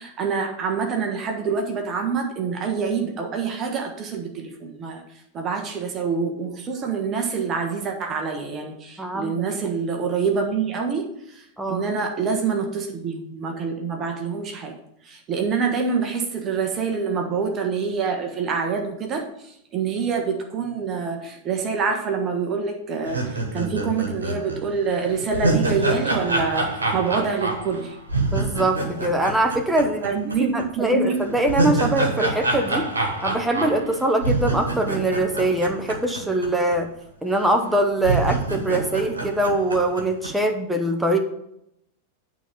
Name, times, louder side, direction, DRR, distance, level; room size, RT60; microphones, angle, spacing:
voice 1, 0.0-5.0 5.3-11.1 11.7-14.7 15.1-19.2 19.7-23.2 23.5-27.9 30.0-31.1, right 5 dB, 30° right, 3 dB, 1.4 m, -26 dB
voice 2, 9.0-9.4 11.6-11.8 28.3-32.9 33.2-36.9 37.2-41.2, right 1 dB, 5° right, 4 dB, 0.9 m, -23 dB
sound 1, 23.1-30.3 30.6-30.7 31.2-36.5 36.7-36.8 37.5-37.6 38.0-40.3, right 2 dB, 75° right, 1.5 m, -26 dB
9.1 x 4.1 x 6.8 m, 0.78 s
figure-of-eight pair, 90°, 0 cm